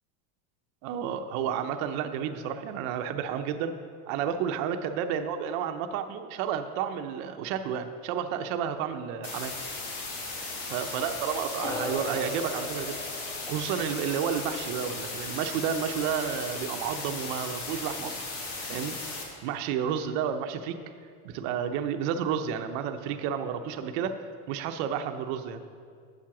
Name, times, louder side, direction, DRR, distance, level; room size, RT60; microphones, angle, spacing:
voice 1, 0.8-3.7 4.1-9.5 10.7-13.0 13.5-18.2 18.7-19.0 19.4-20.8 21.2-25.6, right 8 dB, 60° right, 7 dB, 0.7 m, -31 dB
sound 1, 9.2-19.2, left 3 dB, 85° left, 2.1 m, -37 dB
sound 2, 11.6-16.3, left 2 dB, 10° left, 0.5 m, -40 dB
7.8 x 7.5 x 5.9 m, 2.1 s
cardioid pair, 160°, 44 cm